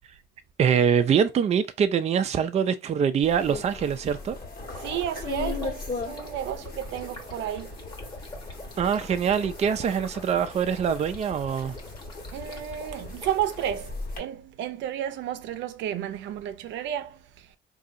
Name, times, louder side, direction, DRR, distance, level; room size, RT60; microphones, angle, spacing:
voice 1, 0.6-4.4 8.8-11.8, right 7 dB, 35° right, 0.4 m, -24 dB
sound 1, 3.2-14.2, left 3 dB, 50° left, 1.5 m, -38 dB
Stream, 4.6-13.7, left 2 dB, 25° left, 1.1 m, -46 dB
voice 2, 4.8-7.8 12.3-17.6, right 10 dB, 90° right, 0.5 m, -32 dB
3.9 x 2.7 x 2.5 m
cardioid pair, 125°, 19 cm